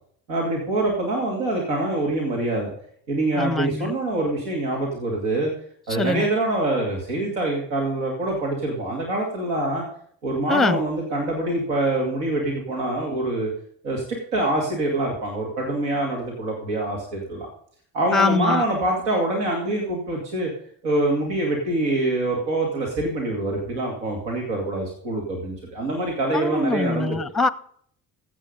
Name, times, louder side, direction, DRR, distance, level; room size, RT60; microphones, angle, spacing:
voice 1, 0.3-2.7 3.1-5.5 5.9-9.8 10.2-13.5 13.8-14.0 14.3-17.5 17.9-20.5 20.8-27.2, right 2 dB, 85° right, 2.6 m, -25 dB
voice 2, 3.4-3.9 5.9-6.3 10.5-10.8 18.1-18.6 26.3-27.5, left 3 dB, ahead, 0.6 m, -23 dB
15.0 x 7.6 x 5.3 m
hypercardioid pair, 60°, 48 cm